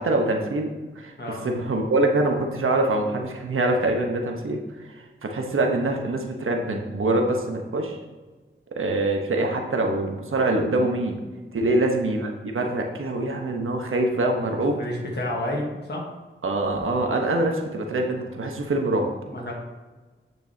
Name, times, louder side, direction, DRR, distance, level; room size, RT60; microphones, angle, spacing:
voice 1, 0.0-8.0 8.7-11.2 11.5-14.8 16.4-19.1, right 2 dB, 80° right, 2 dB, 1.1 m, -24 dB
voice 2, 11.5-11.8 14.5-16.0 18.8-19.0 19.3-19.5, left 1 dB, 55° left, -2 dB, 1.4 m, -31 dB
8.6 x 6.7 x 2.9 m, 1.3 s
wide cardioid pair, 90°, 21 cm